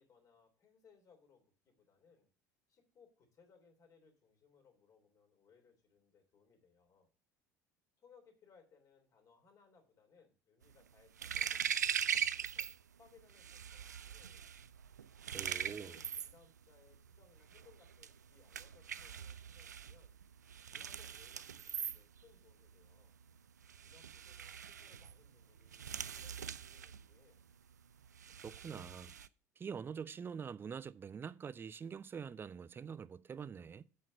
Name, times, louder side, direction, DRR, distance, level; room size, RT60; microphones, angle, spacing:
voice 1, 0.0-2.3 2.7-7.1 8.0-12.7 13.0-14.5 15.3-20.2 20.7-23.1 23.8-27.4, left 5 dB, 40° left, 3.2 m, -67 dB
sound 1, 10.6-12.8 13.1-29.3, right 8 dB, 80° right, 0.3 m, -42 dB
voice 2, 15.3-16.0 28.3-29.1 29.6-33.8, right 6 dB, 25° right, 0.5 m, -45 dB
8.0 x 5.6 x 6.8 m
figure-of-eight pair, 65°, 9 cm